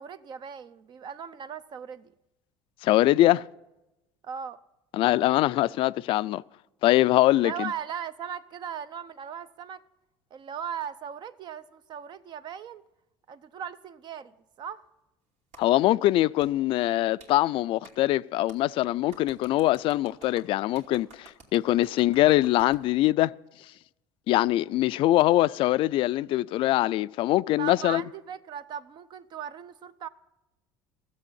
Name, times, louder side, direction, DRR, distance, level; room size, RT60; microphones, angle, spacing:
voice 1, 0.0-2.1 4.2-4.6 7.3-9.8 10.3-12.8 13.3-14.8 27.6-30.1, right 8 dB, 50° right, 0.7 m, -38 dB
voice 2, 2.8-3.5 4.9-6.4 6.8-7.7 15.6-23.3 24.3-28.0, left 15 dB, 60° left, 0.4 m, -23 dB
Clapping, 15.5-15.6 16.4-16.5 17.2-17.3 17.8-18.0 18.5-18.6 19.1-22.9, right 3 dB, 80° right, 2.8 m, -52 dB
15.0 x 7.7 x 8.6 m
supercardioid pair, 100°, 10 cm